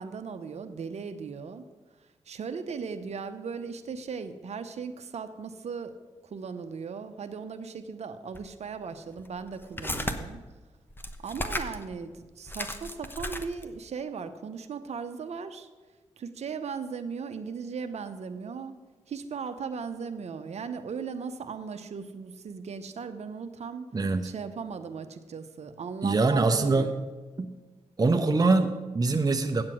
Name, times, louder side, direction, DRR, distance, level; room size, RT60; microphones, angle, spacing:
voice 1, 0.0-1.6 2.3-6.0 6.2-10.4 11.2-15.7 16.2-18.8 19.1-23.9 24.2-27.0, right 5 dB, 60° right, 8 dB, 0.8 m, -37 dB
sound 1, 8.3-8.5 9.1-10.2 10.9-11.9 12.2-12.3 12.5-13.8, left 1 dB, 15° left, 1.0 m, -34 dB
voice 2, 23.9-24.3 26.0-27.0 27.4-27.5 28.0-29.6, right 3 dB, 30° right, 5 dB, 0.7 m, -24 dB
8.7 x 7.5 x 6.1 m, 1.3 s
supercardioid pair, 45°, 12 cm